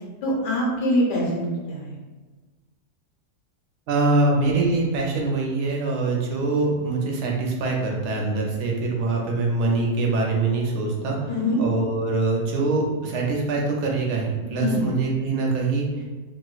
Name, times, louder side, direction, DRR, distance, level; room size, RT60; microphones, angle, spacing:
voice 1, 0.2-1.9 11.3-11.6 14.6-14.8, left 1 dB, 90° left, -3 dB, 1.5 m, -24 dB
voice 2, 3.9-16.0, right 3 dB, 75° right, -1 dB, 1.2 m, -24 dB
3.0 x 2.9 x 2.3 m, 1.3 s
omnidirectional pair, 1.8 m